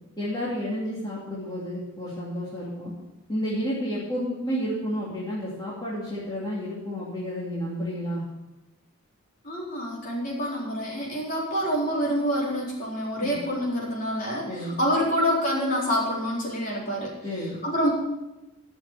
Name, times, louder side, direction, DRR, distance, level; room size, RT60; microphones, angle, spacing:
voice 1, 0.2-2.9 3.3-8.2 13.2-13.3 14.5-14.8 17.2-17.6, equal, 20° left, -8 dB, 2.7 m, -31 dB
voice 2, 9.4-17.9, equal, 40° left, -5 dB, 4.3 m, -27 dB
13.0 x 6.7 x 6.8 m, 1.0 s
head